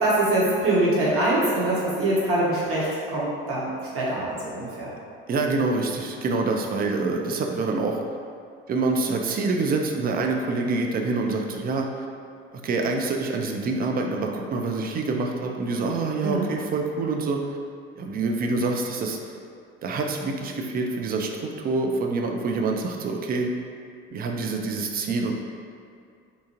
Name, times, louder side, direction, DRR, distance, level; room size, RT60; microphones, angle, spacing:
voice 1, 0.0-3.7 3.9-4.9 16.2-16.5, right 1 dB, 50° right, -7 dB, 1.1 m, -23 dB
voice 2, 5.3-8.0 8.7-12.1 12.5-17.4 18.0-19.2 19.8-21.3 21.6-23.5 24.1-25.3, right 3 dB, 30° right, 2 dB, 0.4 m, -26 dB
2.7 x 2.2 x 2.9 m, 2.3 s
hypercardioid pair, 65°, 29 cm